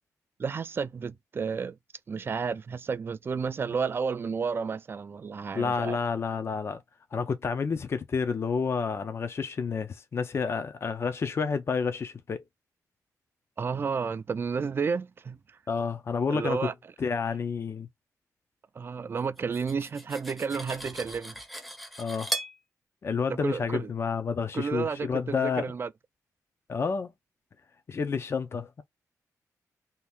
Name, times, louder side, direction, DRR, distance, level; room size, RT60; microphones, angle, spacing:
voice 1, 0.4-1.8 2.1-6.0 13.6-15.4 16.3-16.7 18.8-21.4 23.3-23.9 24.5-25.9, right 5 dB, 40° right, 0.3 m, -31 dB
voice 2, 5.5-6.8 7.1-12.4 15.7-16.7 17.0-17.9 22.0-22.4 23.0-25.7 26.7-27.1 27.9-28.8, left 5 dB, 45° left, 0.5 m, -30 dB
Cutlery silverware, 19.4-22.6, right 1 dB, ahead, 0.7 m, -37 dB
2.8 x 2.5 x 3.4 m
wide cardioid pair, 115°, 6 cm